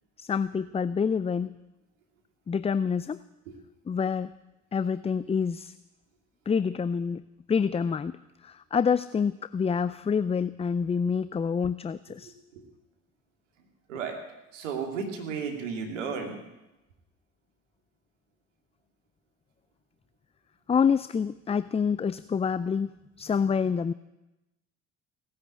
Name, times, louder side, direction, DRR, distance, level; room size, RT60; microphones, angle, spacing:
voice 1, 0.2-1.6 2.5-3.2 3.9-4.3 4.7-5.7 6.5-7.2 7.5-8.2 8.4-12.3 20.7-22.9 23.2-23.9, left 6 dB, 15° left, 15 dB, 0.4 m, -27 dB
voice 2, 14.5-16.4, right 6 dB, 85° right, 3 dB, 2.6 m, -33 dB
18.0 x 8.3 x 8.9 m, 0.97 s
hypercardioid pair, 60°, 36 cm